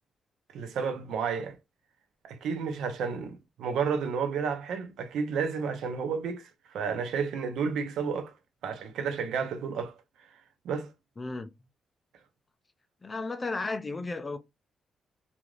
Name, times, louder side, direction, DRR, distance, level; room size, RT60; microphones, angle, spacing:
voice 1, 0.5-1.6 2.2-8.3 8.6-10.0 10.6-10.9, right 6 dB, 85° right, 0.6 m, -31 dB
voice 2, 11.2-11.5 13.0-14.4, left 3 dB, 20° left, 0.3 m, -34 dB
3.1 x 2.4 x 2.3 m
cardioid pair, 155°, 0 cm